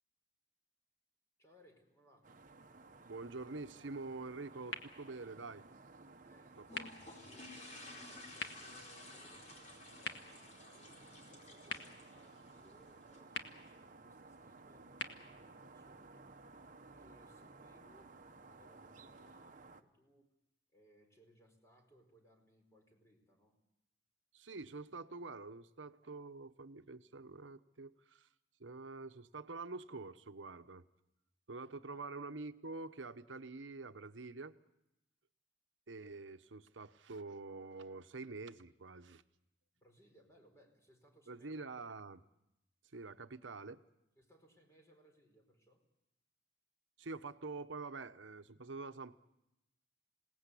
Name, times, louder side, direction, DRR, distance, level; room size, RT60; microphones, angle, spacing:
voice 1, 1.4-2.4 6.2-16.5 16.9-20.3 20.7-23.6 31.9-32.0 39.7-41.5 44.2-45.9, equal, 15° left, 3 dB, 4.9 m, -67 dB
sound 1, 2.2-19.8, right 3 dB, 45° right, 1.1 m, -58 dB
voice 2, 3.1-5.6 6.6-6.9 24.3-28.3 28.6-30.8 31.5-34.5 35.9-39.2 41.3-42.2 42.9-43.8 47.0-49.2, right 3 dB, 80° right, 10 dB, 1.0 m, -46 dB
sound 2, 4.6-16.6, left 4 dB, 65° left, 1.9 m, -51 dB
sound 3, 6.6-13.2, left 2 dB, 40° left, 4.6 m, -54 dB
27.5 x 18.5 x 8.4 m, 0.88 s
head